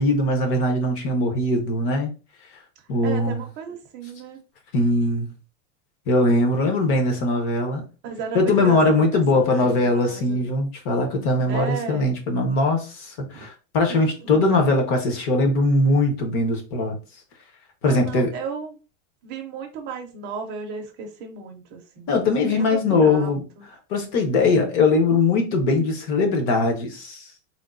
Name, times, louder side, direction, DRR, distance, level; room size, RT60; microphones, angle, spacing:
voice 1, 0.0-2.1 2.9-3.4 4.7-5.3 6.1-7.8 8.3-16.9 17.8-18.3 22.1-23.4 23.9-27.2, left 2 dB, 40° left, 0.9 m, -21 dB
voice 2, 3.0-4.4 8.0-10.5 11.5-12.1 13.3-13.5 13.9-14.0 14.3-14.5 17.8-18.8 19.2-22.1 22.5-23.6, right 5 dB, 25° right, 0.5 m, -34 dB
3.6 x 2.2 x 2.4 m
supercardioid pair, 160°, 43 cm